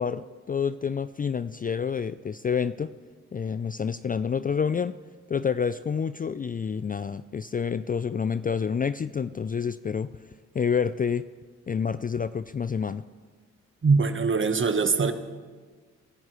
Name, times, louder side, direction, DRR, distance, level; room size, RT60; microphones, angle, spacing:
voice 1, 0.0-2.9 3.3-5.0 5.3-10.2 10.5-11.3 11.7-13.0, left 6 dB, 25° left, 14 dB, 0.4 m, -28 dB
voice 2, 13.8-15.1, right 4 dB, 35° right, 9 dB, 1.3 m, -22 dB
26.0 x 12.0 x 3.1 m, 1.5 s
hypercardioid pair, 40°, 34 cm